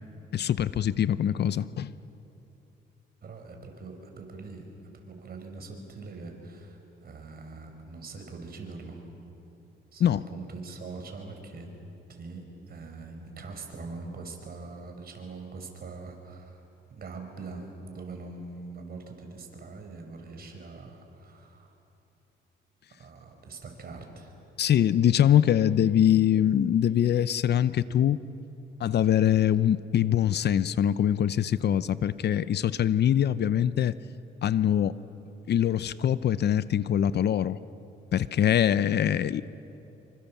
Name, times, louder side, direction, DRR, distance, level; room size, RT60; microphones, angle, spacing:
voice 1, 0.3-1.9 10.0-10.2 24.6-28.2 28.8-33.9 34.4-34.9 35.5-37.6 38.1-39.4, left 10 dB, 55° left, 16 dB, 0.7 m, -23 dB
voice 2, 3.2-4.7 4.9-9.1 9.9-11.7 12.1-16.6 16.9-21.8 23.0-24.3, right 3 dB, 50° right, 4 dB, 4.8 m, -43 dB
27.0 x 24.5 x 7.3 m, 3.0 s
cardioid pair, 90°, 20 cm